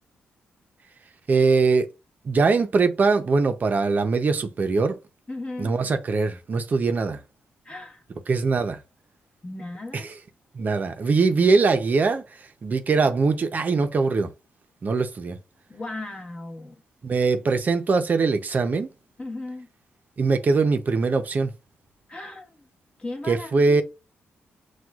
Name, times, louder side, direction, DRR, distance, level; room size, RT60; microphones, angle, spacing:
voice 1, 1.3-1.9 2.2-5.0 5.6-7.2 8.3-8.8 10.5-12.2 12.6-14.3 14.8-15.4 17.0-18.9 20.2-21.5 23.3-23.8, right 4 dB, 45° right, 0.6 m, -22 dB
voice 2, 5.3-5.7 7.6-8.0 9.4-10.1 15.7-16.7 19.2-19.7 22.1-22.5 23.0-23.8, left 2 dB, 25° left, 1.2 m, -36 dB
5.9 x 2.3 x 2.4 m
cardioid pair, 90°, 4 cm